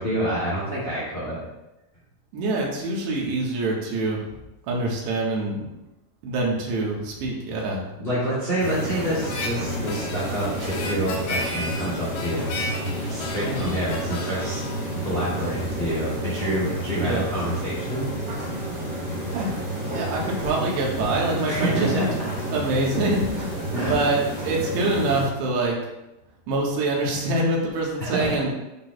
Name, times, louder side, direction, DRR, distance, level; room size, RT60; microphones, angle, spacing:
voice 1, 0.0-1.4 8.0-12.5 13.0-18.1 21.5-22.2 23.7-23.9 28.0-28.4, right 1 dB, 15° left, -10 dB, 2.5 m, -27 dB
voice 2, 2.3-4.2 4.7-5.7 6.2-8.0 13.5-13.7 17.0-17.2 19.3-19.5 19.8-22.1 22.5-25.8 26.5-28.5, right 2 dB, 80° right, -3 dB, 3.6 m, -25 dB
sound 1, 8.6-25.3, right 1 dB, 20° right, 2.7 m, -30 dB
Harmonica, 9.2-15.7, left 2 dB, 75° left, 3.0 m, -34 dB
12.0 x 6.2 x 2.4 m, 0.96 s
omnidirectional pair, 5.0 m